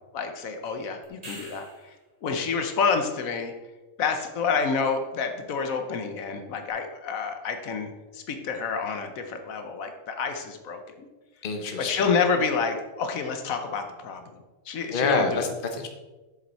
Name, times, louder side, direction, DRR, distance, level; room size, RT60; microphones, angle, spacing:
voice 1, 0.1-1.9 2.2-3.5 4.0-11.1 11.8-15.4, left 5 dB, 85° left, 6 dB, 1.3 m, -28 dB
sound 1, 1.0-2.0 6.7-6.8, right 1 dB, 30° right, 1.9 m, -43 dB
voice 2, 11.4-12.2 14.9-15.9, left 4 dB, 45° left, 5 dB, 1.1 m, -27 dB
7.5 x 7.1 x 4.1 m, 1.2 s
omnidirectional pair, 1.4 m